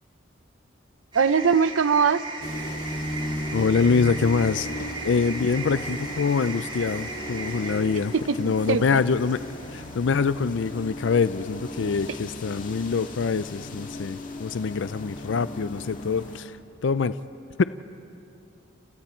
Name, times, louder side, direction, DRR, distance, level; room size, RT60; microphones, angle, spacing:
sound 1, 1.1-9.9, right 3 dB, 25° right, 2.1 m, -38 dB
voice 1, 1.1-2.2 8.1-9.0, right 6 dB, 85° right, 15 dB, 0.6 m, -22 dB
sound 2, 2.4-16.4, left 1 dB, 40° left, 2.1 m, -36 dB
voice 2, 3.5-9.4 9.7-16.6 16.8-17.2 17.6-17.7, left 5 dB, 70° left, 14 dB, 0.4 m, -25 dB
30.0 x 29.5 x 4.4 m, 2.8 s
head